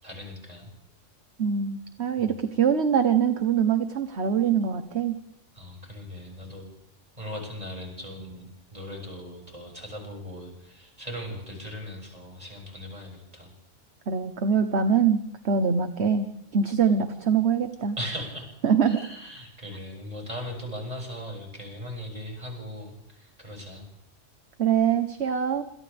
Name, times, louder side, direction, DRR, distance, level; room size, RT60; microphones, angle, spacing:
voice 1, 0.0-0.7 2.2-2.3 5.6-6.7 7.2-13.5 18.0-18.5 18.9-23.9, equal, 30° right, 0 dB, 6.8 m, -39 dB
voice 2, 1.4-5.1 14.1-17.9 18.6-19.0 24.6-25.6, right 7 dB, 60° right, 8 dB, 1.4 m, -24 dB
27.5 x 27.0 x 3.5 m, 0.79 s
omnidirectional pair, 1.3 m